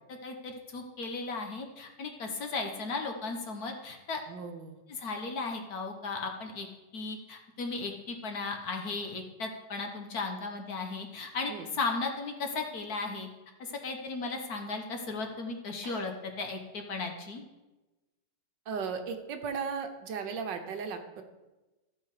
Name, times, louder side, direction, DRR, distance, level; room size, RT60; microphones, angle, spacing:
voice 1, 0.1-4.2 4.9-6.7 6.9-13.3 13.6-17.4, left 3 dB, 55° left, 3 dB, 1.4 m, -36 dB
voice 2, 4.3-4.8 11.5-11.7 15.8-16.0 18.7-21.2, right 6 dB, 70° right, 6 dB, 1.5 m, -36 dB
14.5 x 5.6 x 4.8 m, 1.1 s
omnidirectional pair, 2.1 m